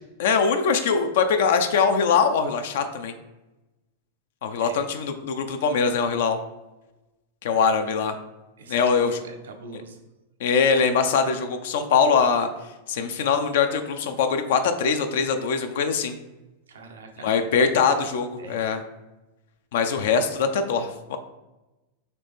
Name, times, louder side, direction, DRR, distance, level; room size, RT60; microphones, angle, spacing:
voice 1, 0.2-3.1 4.4-6.4 7.4-8.1 8.7-9.2 10.4-12.5 12.9-16.1 17.2-18.8 19.7-21.2, left 5 dB, 70° left, 7 dB, 0.4 m, -22 dB
voice 2, 8.6-10.0 16.7-17.3 18.4-18.8, right 3 dB, 85° right, 5 dB, 0.6 m, -43 dB
4.0 x 3.0 x 3.5 m, 1.0 s
hypercardioid pair, 120°, 0 cm